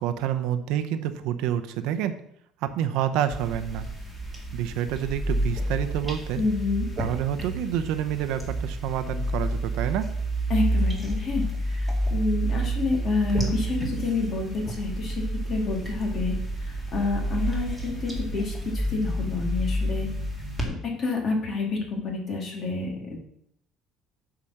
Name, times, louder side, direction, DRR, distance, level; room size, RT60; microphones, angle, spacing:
voice 1, 0.0-2.1 2.7-3.9 4.5-6.4 7.0-10.1, right 10 dB, 75° right, 9 dB, 0.8 m, -28 dB
sound 1, 3.3-20.6, right 1 dB, ahead, 2.2 m, -29 dB
voice 2, 6.4-6.9 10.5-15.1 15.5-16.4 16.6-20.1 20.6-23.3, left 4 dB, 40° left, 0 dB, 2.7 m, -28 dB
8.7 x 5.0 x 6.6 m, 0.69 s
cardioid pair, 140°, 0 cm